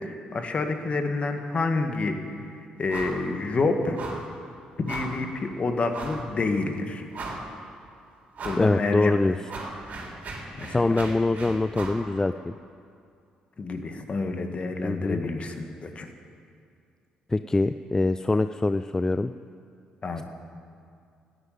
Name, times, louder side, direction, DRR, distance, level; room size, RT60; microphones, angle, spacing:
voice 1, 0.0-2.2 2.8-4.0 4.8-7.0 8.4-9.1 10.5-10.9 13.6-16.1 20.0-20.2, left 3 dB, 40° left, 6 dB, 1.7 m, -28 dB
sound 1, 2.9-3.2 3.5-3.6 4.0-4.3 4.9-5.2 5.9-6.3 6.7-6.8 7.1-7.7 8.4-8.7 9.1-12.0, right 3 dB, 55° right, 3.7 m, -37 dB
voice 2, 8.6-9.4 10.7-12.5 14.8-15.2 17.3-19.3, left 2 dB, 20° left, 11 dB, 0.4 m, -24 dB
13.0 x 9.8 x 9.4 m, 2.4 s
supercardioid pair, 60°, 3 cm